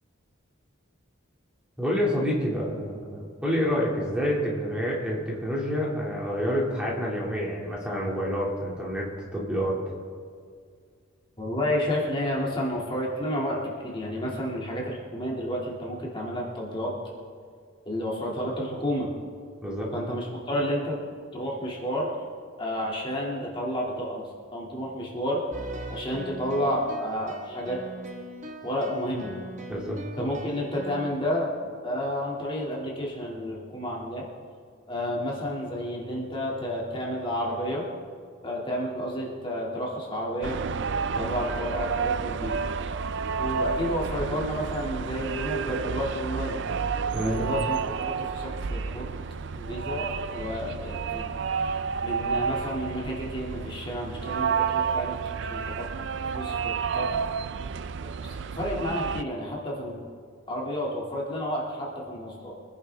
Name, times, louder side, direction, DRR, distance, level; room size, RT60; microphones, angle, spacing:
voice 1, 1.8-9.8 19.6-19.9 29.7-30.3 47.1-47.4, equal, 5° right, -4 dB, 2.2 m, -28 dB
voice 2, 11.4-16.9 17.9-19.1 19.9-21.0 21.3-22.1 22.6-24.2 24.5-25.4 25.9-27.8 28.6-29.4 30.2-31.5 31.8-34.2 34.9-37.8 38.4-40.6 41.2-42.5 43.4-46.5 47.2-49.0 49.6-51.3 51.6-55.1 55.4-55.9 56.3-57.1 58.0-60.1 60.5-62.5, equal, 25° left, -4 dB, 2.3 m, -31 dB
sound 1, 25.5-31.1, right 1 dB, 35° right, 1.1 m, -40 dB
sound 2, 40.4-59.2, right 5 dB, 55° right, 0.4 m, -30 dB
24.0 x 10.5 x 3.4 m, 2.1 s
head